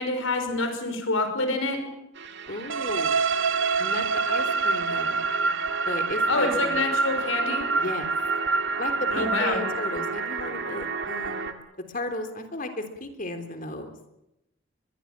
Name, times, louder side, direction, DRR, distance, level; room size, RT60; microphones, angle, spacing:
voice 1, 0.0-1.8 6.3-7.6 9.1-9.6, left 2 dB, 85° left, 6 dB, 5.6 m, -26 dB
sound 1, 2.2-11.5, right 4 dB, 60° right, 2.3 m, -34 dB
voice 2, 2.5-3.2 3.8-5.2 5.9-6.8 7.8-8.1 8.8-11.5 11.9-14.0, left 1 dB, 40° left, 7 dB, 3.4 m, -34 dB
sound 2, 2.7-10.5, right 4 dB, 75° right, 1.1 m, -27 dB
23.5 x 22.0 x 7.5 m, 0.86 s
head